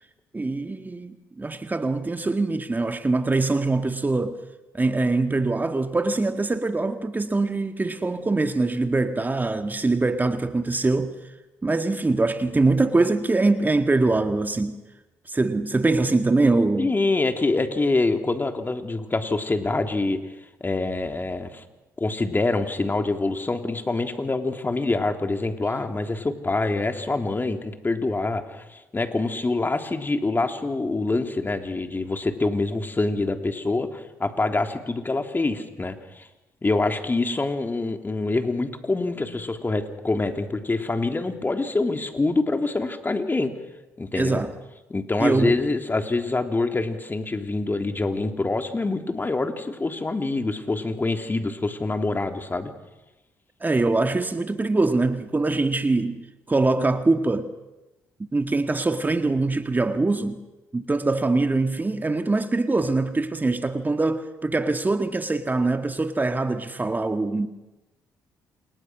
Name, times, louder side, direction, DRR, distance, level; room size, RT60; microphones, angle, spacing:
voice 1, 0.3-4.4 4.7-11.2 11.6-14.8 15.3-16.9 44.1-44.5 45.2-45.6 53.6-56.2 56.5-57.5 58.2-60.4 60.7-67.5, right 3 dB, 25° right, 1.9 m, -23 dB
voice 2, 16.8-20.2 20.6-21.6 22.0-36.3 36.6-43.5 44.0-44.4 44.9-52.7, left 3 dB, 25° left, 3.5 m, -25 dB
29.0 x 28.5 x 6.4 m
hypercardioid pair, 50°, 8 cm